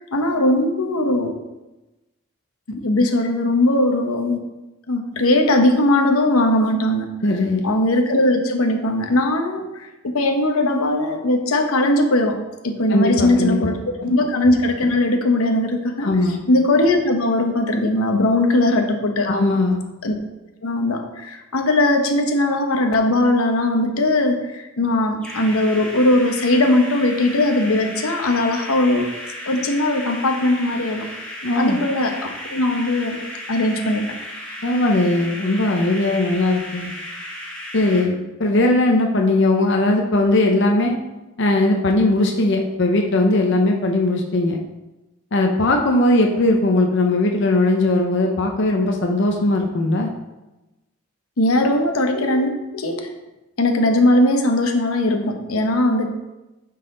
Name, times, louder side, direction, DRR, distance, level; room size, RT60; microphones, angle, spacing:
voice 1, 0.1-1.4 2.7-4.5 4.9-7.1 7.6-16.1 16.5-19.3 20.0-20.1 20.6-29.1 29.5-31.1 31.5-33.2 33.5-34.3 51.4-53.1 53.6-56.1, left 1 dB, 90° left, 4 dB, 0.9 m, -19 dB
voice 2, 7.2-7.6 12.9-14.1 16.0-16.4 19.3-19.8 31.4-31.8 34.6-36.9 37.7-41.0 41.4-44.6 45.3-50.1, left 2 dB, 55° left, 2 dB, 0.7 m, -19 dB
sound 1, 25.2-38.0, left 1 dB, 5° left, 1.5 m, -34 dB
9.4 x 4.1 x 3.8 m, 1.0 s
head